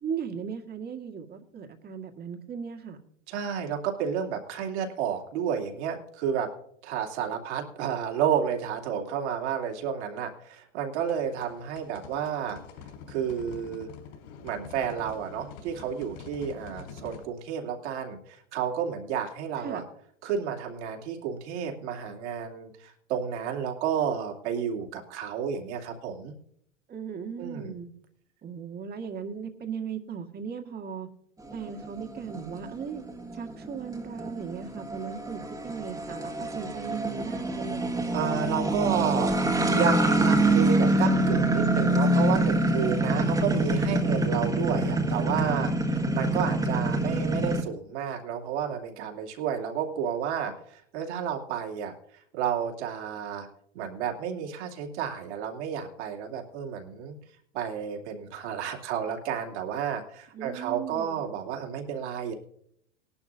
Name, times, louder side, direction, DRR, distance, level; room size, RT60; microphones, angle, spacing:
voice 1, 0.0-3.0 19.6-19.8 26.9-27.9 28.4-31.1 31.5-33.0 33.3-37.8 60.3-61.3, right 6 dB, 25° right, 4 dB, 1.9 m, -37 dB
voice 2, 3.3-6.5 6.8-12.6 13.1-13.9 14.4-19.8 20.2-26.3 27.4-27.7 38.1-51.9 52.3-53.5 53.7-57.2 57.5-62.3, right 8 dB, 60° right, 2 dB, 2.9 m, -31 dB
sound 1, 11.0-17.3, left 7 dB, 60° left, 4.7 m, -46 dB
sound 2, 31.5-47.6, right 1 dB, 10° right, 1.6 m, -25 dB
19.5 x 11.5 x 2.7 m, 0.68 s
hypercardioid pair, 95°, 37 cm